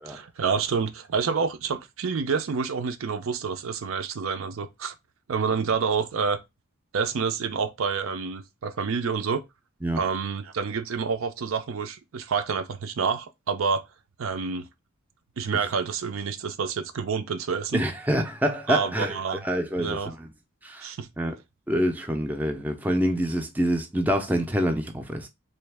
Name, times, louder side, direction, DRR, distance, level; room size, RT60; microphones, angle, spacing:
voice 1, 0.1-4.9 5.3-6.4 6.9-9.4 10.0-13.8 14.2-14.7 15.4-17.8 18.7-19.4 19.8-20.1 20.8-21.1, right 5 dB, 70° right, 0.5 m, -28 dB
voice 2, 17.7-19.2 19.4-20.3 20.6-20.9 21.2-21.3 21.7-25.3, equal, 10° right, 0.4 m, -26 dB
3.1 x 2.8 x 3.3 m
head